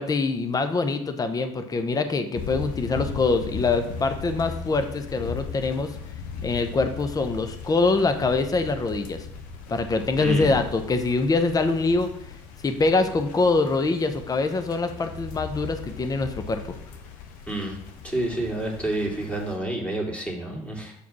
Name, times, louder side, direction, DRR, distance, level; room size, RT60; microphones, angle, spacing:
voice 1, 0.0-6.0 6.4-9.3 9.7-12.1 12.6-16.6, left 3 dB, 20° left, 8 dB, 0.8 m, -24 dB
sound 1, 2.3-19.6, left 6 dB, 60° left, 1.1 m, -38 dB
voice 2, 10.2-10.5 17.5-17.8 18.0-20.9, right 1 dB, 5° left, -1 dB, 2.6 m, -29 dB
7.0 x 4.8 x 6.0 m, 0.74 s
hypercardioid pair, 65°, 16 cm